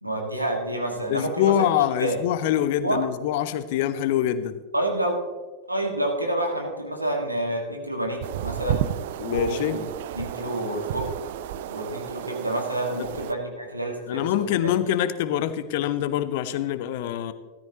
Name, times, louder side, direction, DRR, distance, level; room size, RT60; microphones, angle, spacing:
voice 1, 0.0-1.5 2.0-2.2 2.8-3.0 4.7-5.2 5.7-8.8 9.3-9.8 10.1-11.1 11.7-14.4, right 1 dB, 85° right, 1 dB, 1.7 m, -28 dB
voice 2, 1.1-4.6 9.2-9.8 13.0-13.1 14.1-17.3, left 11 dB, 50° left, 13 dB, 0.7 m, -25 dB
sound 1, 8.2-13.3, right 11 dB, 55° right, 0.5 m, -32 dB
13.5 x 13.0 x 2.9 m, 1.3 s
figure-of-eight pair, 90°, 0 cm